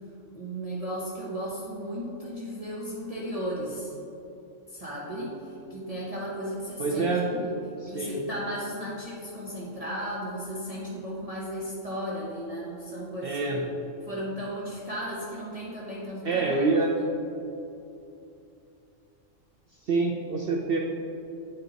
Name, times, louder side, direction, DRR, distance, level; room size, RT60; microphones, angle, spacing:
voice 1, 0.3-4.0 4.7-7.5 7.9-13.7 14.0-16.6 17.0-17.1, equal, 30° right, -7 dB, 1.0 m, -35 dB
voice 2, 6.8-7.3 7.9-8.2 13.2-13.6 16.2-16.9 19.9-20.8, right 3 dB, 55° right, -1 dB, 0.7 m, -26 dB
8.9 x 4.5 x 3.9 m, 2.7 s
omnidirectional pair, 1.4 m